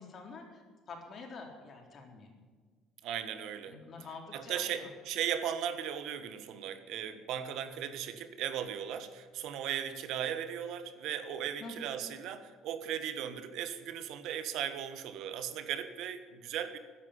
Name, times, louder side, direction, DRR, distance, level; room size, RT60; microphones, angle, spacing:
voice 1, 0.0-2.4 3.7-4.9 11.6-11.7, left 4 dB, 40° left, 2 dB, 3.9 m, -47 dB
voice 2, 3.0-3.8 4.3-16.8, right 9 dB, 70° right, 10 dB, 1.4 m, -37 dB
14.0 x 10.0 x 9.8 m, 1.5 s
cardioid pair, 120°, 0 cm